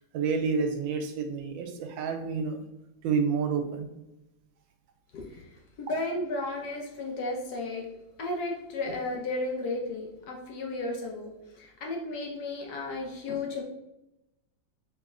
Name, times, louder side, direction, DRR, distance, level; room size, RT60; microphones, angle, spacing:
voice 1, 0.1-2.6 3.0-3.9, right 5 dB, 85° right, 6 dB, 1.3 m, -29 dB
voice 2, 5.1-5.5 5.8-7.9 8.2-13.6, left 2 dB, 70° left, 1 dB, 1.0 m, -34 dB
4.0 x 3.2 x 2.4 m, 0.91 s
omnidirectional pair, 2.0 m